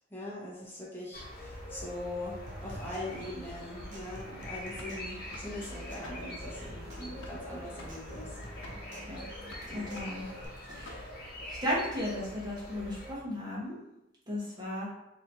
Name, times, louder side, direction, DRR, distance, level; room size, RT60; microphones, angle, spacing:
voice 1, 0.1-8.3 9.0-9.2 9.7-9.8, left 1 dB, 10° left, -6 dB, 1.0 m, -42 dB
sound 1, 1.1-13.1, left 1 dB, 50° left, 1.0 m, -44 dB
Human voice / Acoustic guitar / Percussion, 2.5-10.5, equal, 40° right, 0.8 m, -51 dB
sound 2, 3.8-11.4, left 1 dB, 90° left, 0.7 m, -50 dB
voice 2, 9.7-10.3 10.7-11.0 11.4-13.8 14.3-14.9, left 1 dB, 20° right, -7 dB, 1.2 m, -35 dB
4.0 x 2.9 x 2.8 m, 0.85 s
head